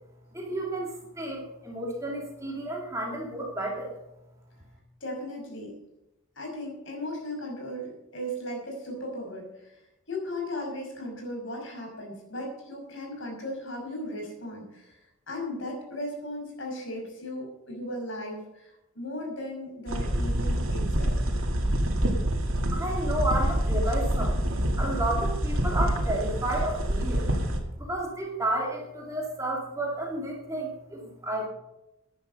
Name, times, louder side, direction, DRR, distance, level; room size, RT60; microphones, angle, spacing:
voice 1, 0.3-4.0 22.7-27.3 27.8-31.5, right 1 dB, 15° right, -1 dB, 2.5 m, -32 dB
voice 2, 5.0-5.7 6.4-21.2, left 1 dB, 60° left, 1 dB, 5.7 m, -37 dB
sound 1, 19.9-27.6, right 1 dB, 75° right, 2.3 m, -26 dB
14.0 x 10.5 x 5.3 m, 0.91 s
head